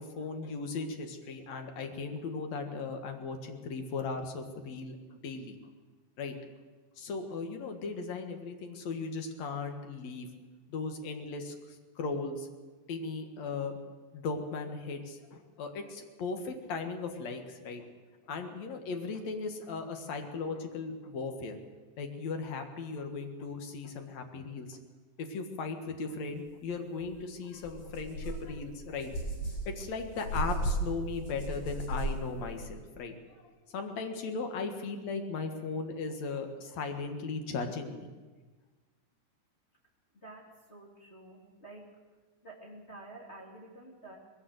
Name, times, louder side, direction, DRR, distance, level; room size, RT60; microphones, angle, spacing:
voice 1, 0.0-5.6 6.2-6.3 7.0-10.3 10.7-12.5 12.9-13.8 14.1-17.9 18.2-21.6 22.0-24.8 25.2-29.1 29.7-33.1 33.7-38.1, left 4 dB, 50° left, 5 dB, 2.3 m, -37 dB
sound 1, 27.0-27.1 27.6-32.6, right 1 dB, 80° left, 8.5 m, -36 dB
voice 2, 40.1-41.9 42.4-44.2, right 2 dB, 20° left, -4 dB, 2.3 m, -50 dB
21.0 x 17.0 x 8.0 m, 1.3 s
omnidirectional pair, 5.0 m